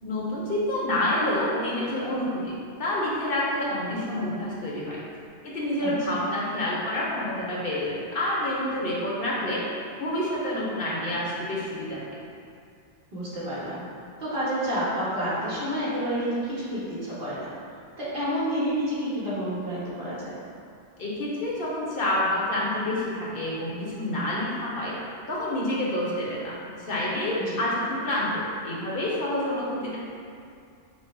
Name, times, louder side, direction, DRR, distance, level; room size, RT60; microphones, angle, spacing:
voice 1, 0.0-2.5 2.8-5.0 5.4-9.6 9.9-12.2 21.0-25.0 25.3-30.0, left 1 dB, 60° left, -6 dB, 1.1 m, -28 dB
voice 2, 5.8-6.2 13.1-13.8 14.2-17.5 18.0-20.3 27.4-27.6, equal, 65° right, -11 dB, 1.8 m, -29 dB
5.8 x 2.1 x 4.5 m, 2.4 s
omnidirectional pair, 1.1 m